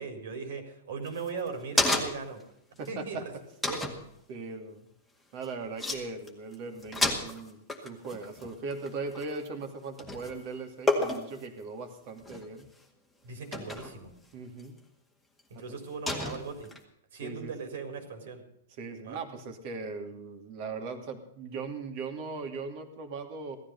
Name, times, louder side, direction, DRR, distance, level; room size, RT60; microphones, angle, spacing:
voice 1, 0.0-2.4 2.9-3.2 3.7-4.0 13.2-14.1 15.5-16.7 17.1-18.4 19.0-19.2, right 5 dB, 65° right, 7 dB, 4.6 m, -38 dB
sound 1, 1.1-2.4 2.8-2.9 3.6-4.0 5.4-5.5 5.8-6.0 6.3-6.5 6.8-9.6 10.0-10.4 10.9-11.4 12.2-12.7 13.5-14.0 14.6-14.7 16.1-16.8, left 2 dB, ahead, 2.1 m, -31 dB
voice 2, 2.8-3.3 4.3-4.9 5.3-12.7 14.3-14.8 15.5-15.6 17.2-17.5 18.8-23.6, right 4 dB, 35° right, 7 dB, 2.8 m, -39 dB
17.0 x 14.0 x 5.5 m, 0.73 s
supercardioid pair, 165°, 0 cm